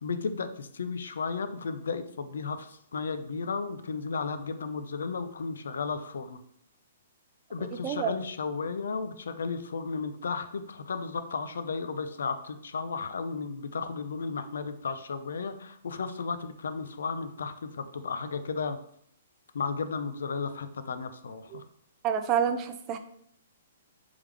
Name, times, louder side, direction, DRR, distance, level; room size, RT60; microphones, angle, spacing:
voice 1, 0.0-6.4 7.5-18.8 19.5-21.6, left 5 dB, 80° left, 10 dB, 0.4 m, -34 dB
voice 2, 7.8-8.2 21.5-21.6 22.0-23.0, right 8 dB, 30° right, 8 dB, 0.4 m, -28 dB
3.5 x 3.4 x 3.3 m, 0.67 s
hypercardioid pair, 145°, 0 cm